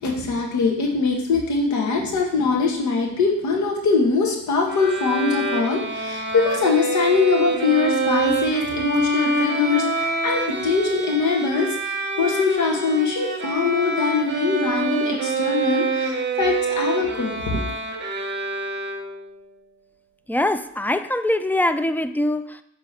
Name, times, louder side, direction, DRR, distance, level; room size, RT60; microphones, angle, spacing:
voice 1, 0.0-17.7, left 4 dB, 70° left, 1 dB, 1.8 m, -22 dB
Bowed string instrument, 4.7-19.3, right 3 dB, 35° right, 1.4 m, -26 dB
voice 2, 20.3-22.6, left 1 dB, 5° left, 11 dB, 0.4 m, -23 dB
8.3 x 3.7 x 6.0 m, 0.75 s
cardioid pair, 90°, 30 cm